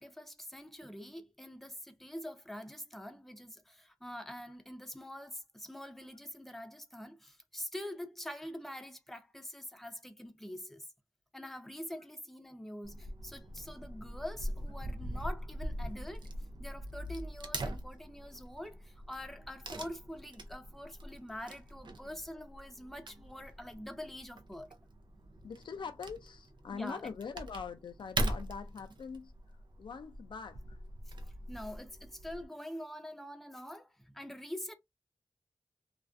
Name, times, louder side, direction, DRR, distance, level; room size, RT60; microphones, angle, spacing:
voice 1, 0.0-10.9 11.3-16.3 16.6-24.7 26.7-27.1 31.5-34.7, left 1 dB, 5° left, 0.5 m, -45 dB
Wood / Tearing, 12.8-32.5, right 1 dB, 75° right, 0.5 m, -42 dB
voice 2, 25.4-29.3 29.8-30.8, left 6 dB, 80° left, 0.3 m, -43 dB
2.4 x 2.2 x 2.4 m
cardioid pair, 50°, 8 cm